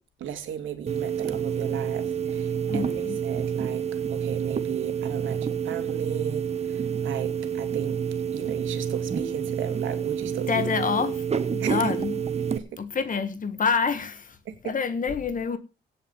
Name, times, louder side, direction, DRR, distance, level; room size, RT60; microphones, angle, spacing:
voice 1, 0.2-3.8 4.1-8.0 8.3-10.7 11.6-11.9 12.6-12.8 14.4-14.7, right 9 dB, 75° right, 2.7 m, -36 dB
sound 1, 0.9-12.6, right 7 dB, 30° right, 1.1 m, -28 dB
voice 2, 2.7-3.2 10.5-12.2 12.8-14.4 14.6-15.6, left 6 dB, 40° left, 1.6 m, -27 dB
17.0 x 5.8 x 7.3 m
cardioid pair, 90°, 20 cm